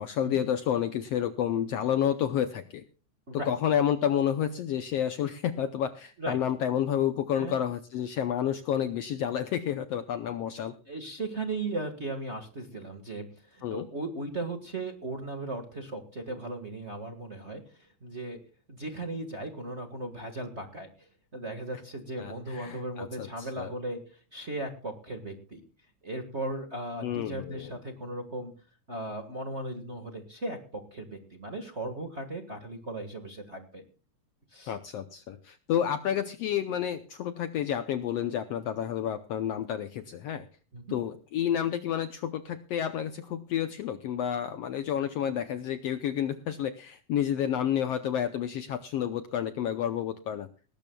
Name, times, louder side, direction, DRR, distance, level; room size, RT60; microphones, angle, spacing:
voice 1, 0.0-2.8 3.3-10.7 13.6-13.9 22.2-23.7 27.0-27.7 34.7-40.5 40.9-50.5, left 9 dB, 70° left, 10 dB, 1.6 m, -30 dB
voice 2, 10.8-18.4 18.7-20.9 21.3-25.6 26.0-28.5 28.9-33.8 34.5-34.8 40.7-41.0, right 2 dB, 30° right, 5 dB, 1.3 m, -37 dB
19.5 x 18.0 x 2.3 m, 0.36 s
omnidirectional pair, 3.5 m